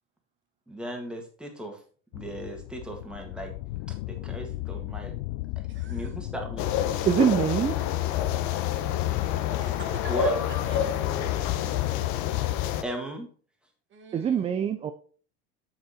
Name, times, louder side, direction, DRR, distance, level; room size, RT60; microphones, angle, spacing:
voice 1, 0.7-1.8 2.1-3.5 3.9-5.1 5.6-6.7 10.1-10.4 12.8-13.3, right 1 dB, 5° right, 2 dB, 1.8 m, -36 dB
sound 1, 2.1-12.5, left 18 dB, 80° left, 0.5 m, -37 dB
voice 2, 5.7-6.2 9.6-11.0 13.9-14.5, right 5 dB, 35° right, 6 dB, 1.5 m, -44 dB
sound 2, 6.6-12.8, left 11 dB, 60° left, 0.9 m, -27 dB
voice 3, 7.0-7.8 14.1-14.9, right 8 dB, 20° right, 8 dB, 0.4 m, -24 dB
7.1 x 6.2 x 4.3 m, 0.42 s
supercardioid pair, 130°, 34 cm